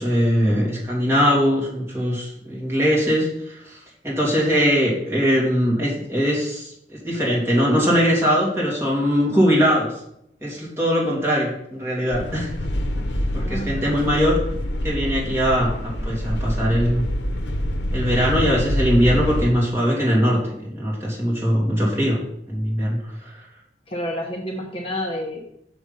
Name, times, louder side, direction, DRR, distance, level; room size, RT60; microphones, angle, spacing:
voice 1, 0.0-3.8 4.0-9.9 10.4-12.5 13.5-14.4 14.8-17.0 17.9-22.2 22.5-23.3, equal, 15° right, -5 dB, 2.6 m, -21 dB
sound 1, 12.1-19.4, equal, 70° left, 0.8 m, -26 dB
voice 2, 13.4-13.8 23.9-25.4, equal, 30° left, 1 dB, 0.8 m, -29 dB
6.3 x 6.2 x 5.3 m, 0.77 s
head